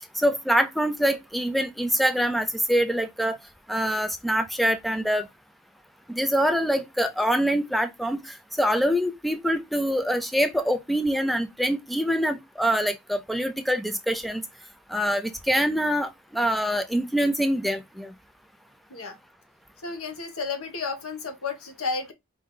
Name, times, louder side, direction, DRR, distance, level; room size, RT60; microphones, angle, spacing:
voice 1, 0.2-3.4 3.7-5.3 6.1-14.4 14.9-18.1, equal, ahead, 0.4 m, -25 dB
voice 2, 19.8-22.1, left 4 dB, 80° left, 1.2 m, -32 dB
4.9 x 2.7 x 3.8 m
head